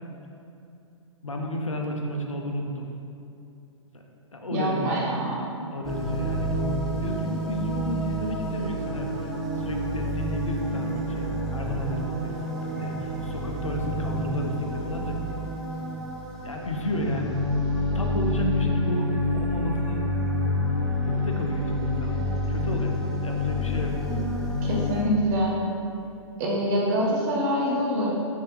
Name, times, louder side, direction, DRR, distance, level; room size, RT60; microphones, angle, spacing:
voice 1, 1.2-2.9 3.9-4.0 4.3-5.2 5.7-15.2 16.4-17.4 17.9-20.0 21.1-22.2 22.5-23.0 23.2-24.0, equal, 85° left, 2 dB, 0.5 m, -32 dB
voice 2, 4.5-5.5 24.6-25.6 26.4-28.1, equal, 35° right, -4 dB, 0.9 m, -25 dB
sound 1, 5.8-25.0, left 1 dB, ahead, 0.4 m, -28 dB
4.1 x 3.4 x 3.3 m, 2.7 s
figure-of-eight pair, 115°, 16 cm